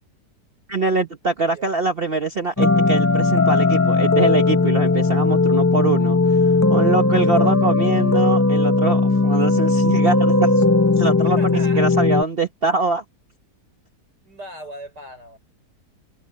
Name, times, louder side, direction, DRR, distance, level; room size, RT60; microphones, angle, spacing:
voice 1, 0.7-10.6 11.0-11.4 11.8-13.0, right 3 dB, 40° right, 1.1 m, -23 dB
sound 1, 2.6-12.2, left 3 dB, 20° left, 0.4 m, -17 dB
voice 2, 11.2-11.9 14.2-15.4, right 1 dB, 75° right, 6.7 m, -38 dB
omnidirectional pair, 1.8 m